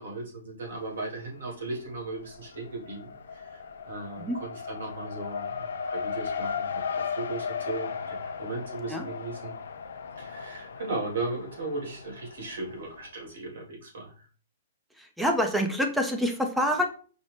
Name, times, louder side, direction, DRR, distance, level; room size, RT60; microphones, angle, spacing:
voice 1, 0.0-3.6 3.9-9.5 10.2-14.1, right 2 dB, 85° right, -1 dB, 1.6 m, -37 dB
Race car auto racing, 0.7-1.4 1.7-13.1, left 6 dB, 80° left, 0.4 m, -36 dB
voice 2, 15.0-16.9, equal, ahead, 4 dB, 0.5 m, -26 dB
5.2 x 2.0 x 3.2 m, 0.40 s
hypercardioid pair, 160°, 0 cm